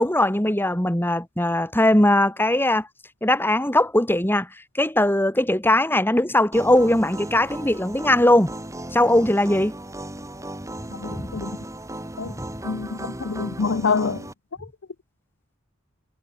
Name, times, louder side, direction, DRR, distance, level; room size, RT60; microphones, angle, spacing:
voice 1, 0.0-2.9 3.2-4.5 4.8-8.5 8.9-9.7 11.1-11.3 12.3-12.5, left 1 dB, 10° left, 3.2 m, -20 dB
sound 1, 6.5-14.3, right 1 dB, 15° right, 4.0 m, -36 dB
voice 2, 10.9-11.5 12.2-12.3 12.6-14.2, left 5 dB, 65° left, 0.6 m, -26 dB
head